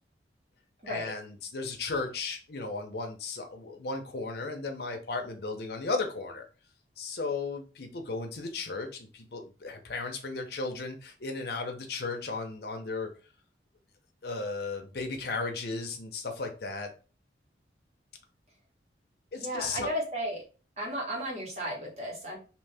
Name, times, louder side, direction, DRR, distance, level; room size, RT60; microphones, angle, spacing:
voice 1, 0.9-6.5 7.0-13.1 14.2-16.9 19.3-19.9, left 3 dB, 60° left, 0.7 m, -35 dB
voice 2, 19.3-20.4 20.8-22.4, equal, 35° right, 1.3 m, -34 dB
2.8 x 2.7 x 3.3 m
head